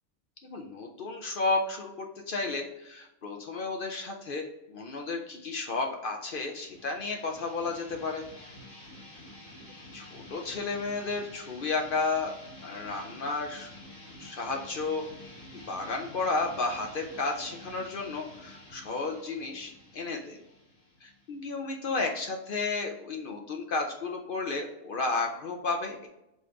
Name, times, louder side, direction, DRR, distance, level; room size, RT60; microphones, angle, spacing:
voice 1, 0.4-1.9 2.3-8.2 9.9-12.3 12.6-13.7 14.2-15.1 15.5-20.4 21.0-26.1, left 3 dB, 55° left, 3 dB, 0.6 m, -32 dB
sound 1, 6.3-21.7, left 1 dB, 85° left, 2.0 m, -49 dB
5.1 x 2.5 x 3.3 m, 0.89 s
omnidirectional pair, 1.3 m